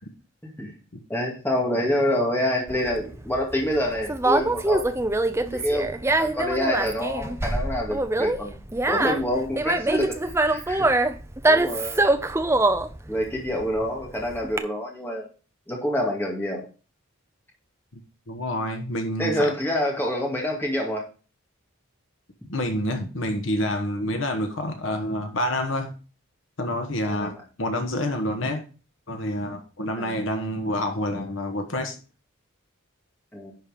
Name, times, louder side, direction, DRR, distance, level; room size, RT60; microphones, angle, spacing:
voice 1, 1.1-4.9 5.4-8.6 8.9-10.9 11.5-12.0 13.1-15.3 15.7-16.7 19.2-21.0 27.0-27.4 30.0-30.2 33.3-33.5, equal, 10° left, 2.0 m, -27 dB
Conversation, 2.7-14.6, right 2 dB, 10° right, 0.5 m, -24 dB
voice 2, 18.3-19.5 22.5-25.9 26.6-28.6 29.1-31.9, left 1 dB, 60° left, 1.2 m, -28 dB
10.5 x 4.4 x 5.0 m
head